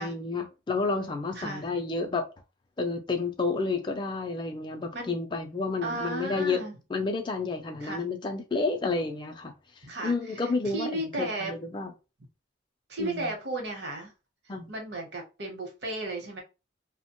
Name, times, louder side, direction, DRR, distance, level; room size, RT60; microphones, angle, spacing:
voice 1, 0.0-2.3 2.8-6.6 6.9-9.5 10.0-11.9 13.0-13.3 14.5-14.7, left 3 dB, 25° left, 0.4 m, -30 dB
voice 2, 1.3-1.7 4.9-5.2 5.8-6.7 7.8-8.0 9.8-11.5 12.9-14.1 14.7-16.4, right 2 dB, 65° right, 0.9 m, -34 dB
2.9 x 2.1 x 2.9 m
head